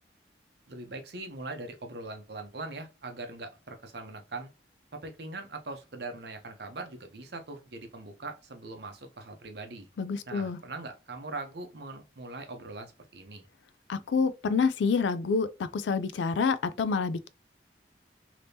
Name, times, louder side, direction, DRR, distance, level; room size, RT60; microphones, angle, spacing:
voice 1, 0.7-4.5 4.9-9.9 10.3-13.5, right 2 dB, 60° right, 0.7 m, -41 dB
voice 2, 10.0-10.6 13.9-15.5 15.7-17.3, left 5 dB, 75° left, 0.4 m, -27 dB
3.4 x 2.9 x 2.7 m
head